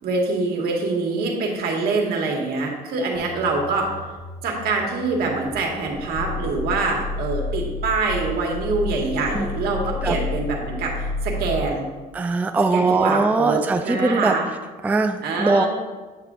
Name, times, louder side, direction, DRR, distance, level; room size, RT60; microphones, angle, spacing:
voice 1, 0.0-4.0 4.4-11.8 12.7-14.5 15.2-15.7, right 3 dB, 70° right, -1 dB, 1.7 m, -24 dB
sound 1, 3.1-8.4, left 1 dB, 45° right, 1.2 m, -43 dB
Growling, 5.9-11.8, left 2 dB, 80° left, 1.4 m, -30 dB
voice 2, 12.1-14.4 14.8-15.7, right 3 dB, 10° right, 7 dB, 0.3 m, -21 dB
8.7 x 6.6 x 2.5 m, 1.3 s
cardioid pair, 110°, 17 cm